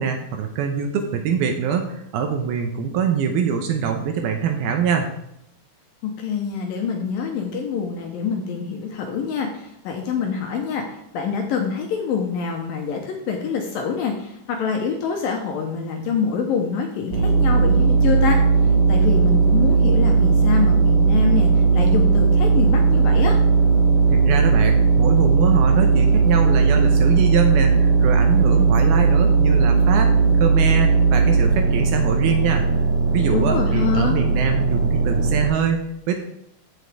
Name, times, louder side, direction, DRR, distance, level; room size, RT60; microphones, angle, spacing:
voice 1, 0.0-5.1 24.1-30.1 30.4-32.6 33.1-36.2, right 7 dB, 75° right, 4 dB, 2.5 m, -24 dB
voice 2, 6.0-10.8 11.1-18.4 18.9-23.4 33.3-34.2, left 6 dB, 70° left, 2 dB, 2.3 m, -25 dB
sound 1, 17.1-35.5, right 4 dB, 55° right, 3.5 m, -17 dB
14.5 x 6.1 x 3.5 m, 0.79 s
omnidirectional pair, 4.9 m